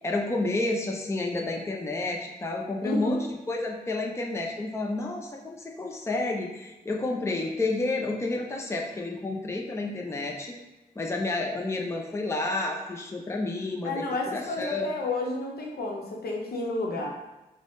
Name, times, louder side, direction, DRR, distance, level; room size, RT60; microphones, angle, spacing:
voice 1, 0.0-10.5 11.0-14.9, left 2 dB, 15° left, 1 dB, 0.5 m, -30 dB
voice 2, 2.8-3.2 13.8-17.1, left 2 dB, 65° left, -2 dB, 0.8 m, -31 dB
4.0 x 2.1 x 3.1 m, 1.0 s
supercardioid pair, 45°, 17 cm